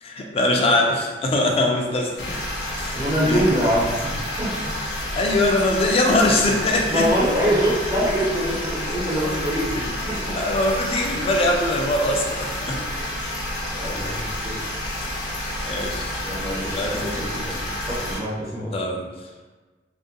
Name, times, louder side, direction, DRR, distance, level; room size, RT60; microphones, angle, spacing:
voice 1, 0.0-2.4 2.8-3.4 5.1-7.1 9.8-9.9 10.3-12.8 15.6-16.1 16.8-17.4 18.7-19.1, left 1 dB, 35° left, 1 dB, 0.3 m, -22 dB
sound 1, 2.2-18.2, left 1 dB, 90° left, 0.6 m, -29 dB
voice 2, 2.9-4.5 6.9-10.4 13.7-14.6 15.0-15.1 16.2-17.6 17.9-18.7, equal, 15° right, -7 dB, 0.7 m, -24 dB
2.7 x 2.4 x 2.2 m, 1.3 s
head